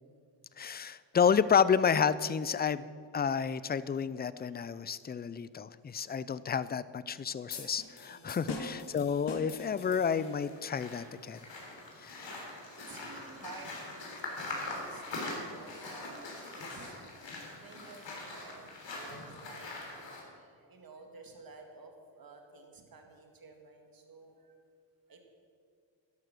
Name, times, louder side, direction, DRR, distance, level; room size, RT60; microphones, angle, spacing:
voice 1, 0.6-11.4 12.0-12.3, left 7 dB, 25° left, 16 dB, 0.3 m, -30 dB
voice 2, 4.5-4.9 8.1-8.4 12.2-16.9 17.6-24.6 25.1-25.2, right 3 dB, 50° right, 3 dB, 2.1 m, -53 dB
sound 1, 7.5-10.6, left 3 dB, 60° left, 1.9 m, -43 dB
sound 2, 10.1-20.2, left 2 dB, 75° left, 3.5 m, -43 dB
12.5 x 12.0 x 6.2 m, 2.2 s
wide cardioid pair, 120°, 45 cm